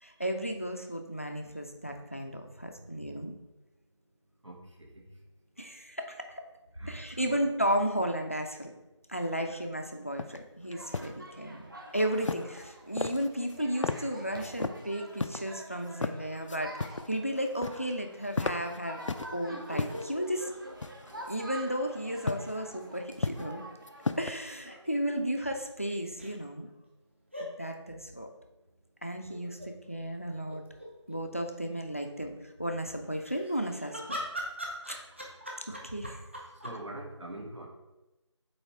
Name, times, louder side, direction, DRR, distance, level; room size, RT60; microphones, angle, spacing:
voice 1, 0.0-3.3 5.6-6.5 6.9-8.7 9.1-19.0 19.3-20.5 21.3-23.6 24.2-26.7 27.4-28.3 29.0-30.6 31.1-34.2 34.9-35.0 35.7-36.2, equal, 25° left, 5 dB, 0.5 m, -34 dB
voice 2, 4.4-5.2 6.7-7.4 9.3-9.4 11.7-11.9 36.5-37.7, right 1 dB, 70° right, 0 dB, 1.6 m, -45 dB
sound 1, 10.2-10.4 10.7-11.1 12.2-12.7 13.0-13.6 13.8-14.0 14.4-14.8 15.2-15.4 15.9-16.2 16.5-17.1 17.4-17.9 18.2-19.3 19.7-20.1 20.8-21.2 22.3-22.5 22.9-23.5 23.9-24.3, left 3 dB, 85° left, 0.5 m, -34 dB
sound 2, 10.7-24.5, right 1 dB, 45° right, 1.2 m, -48 dB
sound 3, 19.5-21.7 22.0-22.1 24.2-24.9 26.2-26.3 27.3-27.5 29.3-29.7 30.2-30.3 30.5-31.2 33.1-36.8, equal, 25° right, 0.7 m, -41 dB
8.1 x 3.1 x 4.6 m, 1.0 s
figure-of-eight pair, 175°, 16 cm